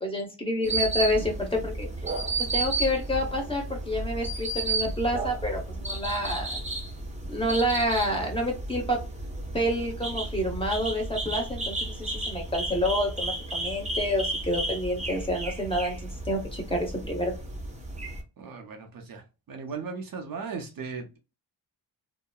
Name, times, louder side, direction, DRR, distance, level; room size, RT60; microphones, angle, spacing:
voice 1, 0.0-1.9 2.5-6.6 7.3-9.0 9.5-16.0 16.3-17.3, equal, 10° left, 0.9 m, -28 dB
sound 1, 0.6-18.2, right 2 dB, 15° right, 0.7 m, -33 dB
voice 2, 18.4-19.2 19.5-21.2, right 5 dB, 50° right, 0.7 m, -37 dB
2.8 x 2.0 x 2.2 m
cardioid pair, 120°, 44 cm